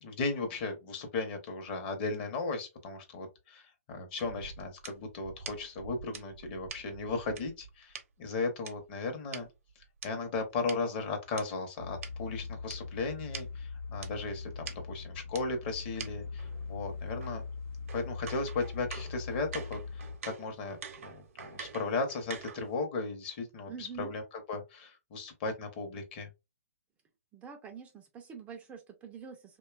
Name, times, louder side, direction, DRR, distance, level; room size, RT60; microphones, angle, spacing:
voice 1, 0.0-9.5 10.0-17.4 17.9-20.8 21.0-24.2 24.5-26.3, left 3 dB, 40° left, 0.7 m, -36 dB
sound 1, 4.2-8.0 8.6-11.4 12.0-12.1 12.7-12.8 13.0-13.1 13.3-13.5 14.0-14.1 14.7-14.8 15.3-15.4 16.0-16.1 16.4-22.7, right 6 dB, 60° right, 0.6 m, -46 dB
sound 2, 11.8-20.2, left 4 dB, 75° left, 0.3 m, -41 dB
voice 2, 23.7-24.1 27.3-29.6, right 6 dB, 15° right, 0.4 m, -46 dB
2.7 x 2.2 x 2.3 m
hypercardioid pair, 135°, 8 cm